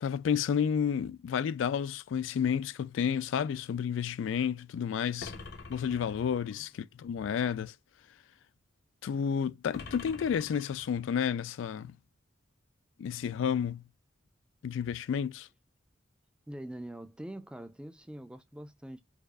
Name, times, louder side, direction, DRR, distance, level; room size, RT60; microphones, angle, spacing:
voice 1, 0.0-5.3 5.7-7.7 9.0-11.9 13.0-13.8 14.6-15.5, left 7 dB, 85° left, 0.3 m, -31 dB
sound 1, 5.2-6.6 9.7-11.2, left 3 dB, 55° left, 0.7 m, -46 dB
voice 2, 16.5-19.0, right 1 dB, 5° right, 0.3 m, -44 dB
4.7 x 2.4 x 2.3 m
head